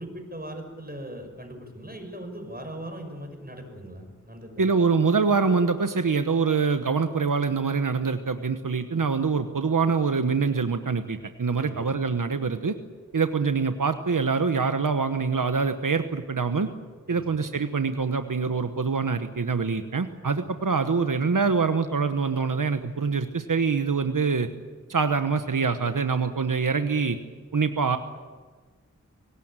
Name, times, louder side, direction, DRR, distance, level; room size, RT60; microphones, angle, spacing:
voice 1, 0.0-4.7 11.6-11.9 17.1-17.4, right 1 dB, 30° right, 4 dB, 6.1 m, -39 dB
voice 2, 4.6-12.8 13.1-16.7 17.1-24.5 24.9-27.2 27.5-28.0, right 5 dB, 85° right, 8 dB, 1.2 m, -25 dB
24.0 x 18.5 x 9.0 m, 1.4 s
wide cardioid pair, 45°, 31 cm